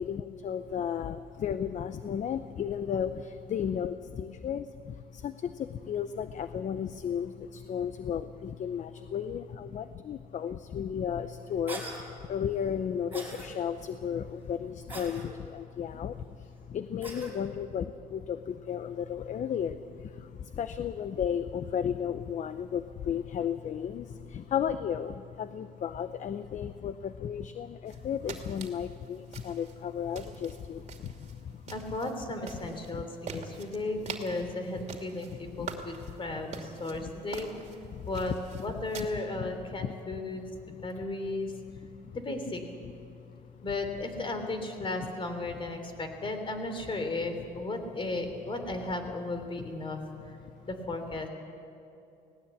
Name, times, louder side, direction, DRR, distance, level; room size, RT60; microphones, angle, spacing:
voice 1, 0.0-31.6 35.6-35.7 37.9-38.1 39.8-39.9, left 8 dB, 45° left, 12 dB, 0.7 m, -34 dB
Cough, 11.7-12.0 13.1-13.5 14.9-15.3 17.0-17.3, right 2 dB, 10° right, 5.2 m, -40 dB
sound 1, 27.9-39.0, right 6 dB, 45° right, 2.6 m, -46 dB
voice 2, 31.7-37.5 38.1-38.3 38.6-41.5 42.1-42.6 43.6-50.4 50.7-51.3, left 2 dB, 30° left, 6 dB, 3.2 m, -35 dB
19.0 x 18.5 x 8.2 m, 2.7 s
cardioid pair, 110°, 17 cm